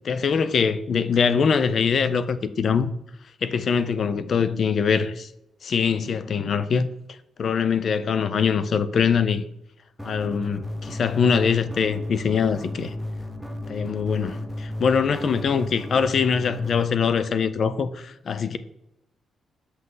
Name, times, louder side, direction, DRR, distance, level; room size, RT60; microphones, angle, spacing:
voice 1, 0.0-2.9 3.4-5.3 5.6-6.9 7.4-9.4 10.0-12.9 13.7-18.6, left 6 dB, 45° left, 0.5 m, -23 dB
sound 1, 10.0-16.8, left 1 dB, ahead, 0.7 m, -34 dB
7.6 x 5.8 x 3.9 m
wide cardioid pair, 160°, 0 cm